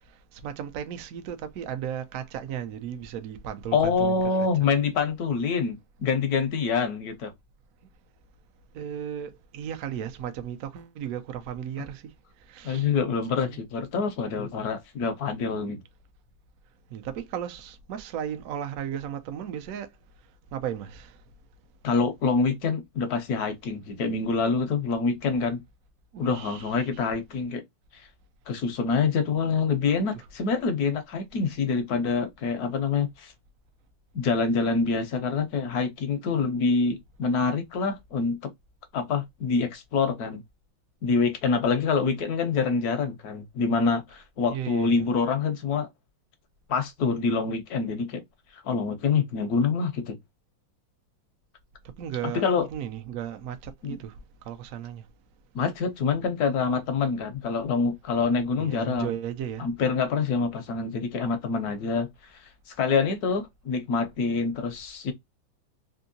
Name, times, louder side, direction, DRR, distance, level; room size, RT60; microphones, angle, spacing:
voice 1, 0.3-4.5 8.7-12.1 12.4-12.9 13.4-13.6 16.9-19.9 20.5-21.2 26.1-26.9 44.5-45.0 52.0-52.4 52.7-54.2 54.4-55.1 58.6-59.7, right 9 dB, 70° right, 0.8 m, -35 dB
voice 2, 3.7-7.3 12.6-15.8 21.8-25.6 26.2-27.6 27.9-28.0 28.5-33.3 34.1-38.4 38.9-40.4 41.0-45.9 46.7-48.2 48.6-50.2 52.3-52.7 53.8-54.0 55.5-59.1 59.6-62.1 62.3-62.4 62.8-65.1, left 5 dB, 65° left, 1.0 m, -26 dB
3.5 x 2.7 x 2.6 m
omnidirectional pair, 2.2 m